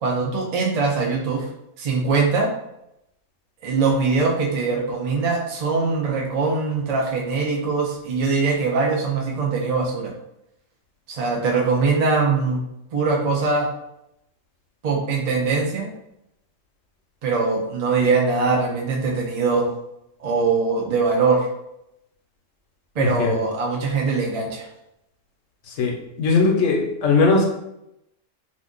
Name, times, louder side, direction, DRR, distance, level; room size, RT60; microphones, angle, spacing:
voice 1, 0.0-1.5 1.8-2.5 3.6-10.1 11.1-12.6 12.9-13.7 14.8-15.9 17.2-19.7 20.2-21.5 23.0-24.7, right 4 dB, 50° right, -2 dB, 0.4 m, -22 dB
voice 2, 23.0-23.4 25.7-27.4, left 3 dB, 75° left, 1 dB, 1.0 m, -19 dB
2.5 x 2.5 x 3.7 m, 0.83 s
omnidirectional pair, 1.4 m